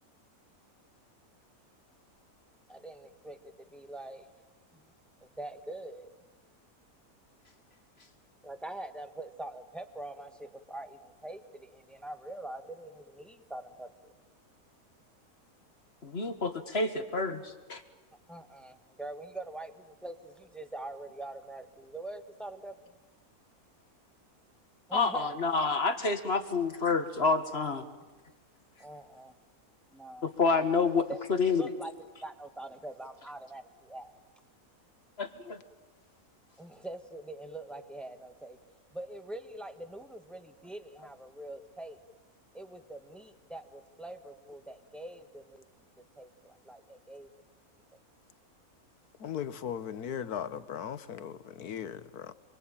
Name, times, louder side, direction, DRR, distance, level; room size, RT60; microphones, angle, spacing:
voice 1, 2.7-4.3 4.7-4.9 5.2-6.3 8.4-14.1 18.3-23.0 24.9-25.3 28.8-29.4 29.9-30.3 31.1-31.2 31.6-34.2 36.6-38.6 38.9-42.0 42.5-47.3, right 1 dB, ahead, 8 dB, 1.3 m, -44 dB
voice 2, 16.0-17.8 24.9-27.8 30.2-31.7 35.2-35.6, left 4 dB, 45° left, 8 dB, 1.8 m, -28 dB
voice 3, 49.2-52.3, left 9 dB, 90° left, 14 dB, 1.5 m, -38 dB
26.5 x 23.0 x 8.9 m, 1.3 s
omnidirectional pair, 1.6 m